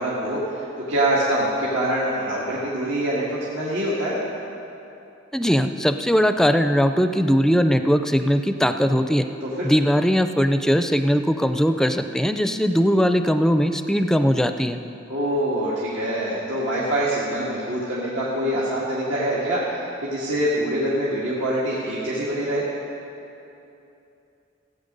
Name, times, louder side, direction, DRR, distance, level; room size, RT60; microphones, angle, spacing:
voice 1, 0.0-4.2 9.4-9.7 15.1-22.6, right 1 dB, 90° right, -7 dB, 1.8 m, -25 dB
voice 2, 5.3-9.3 9.6-14.8, equal, 5° left, 8 dB, 0.4 m, -20 dB
16.5 x 8.5 x 5.3 m, 2.8 s
head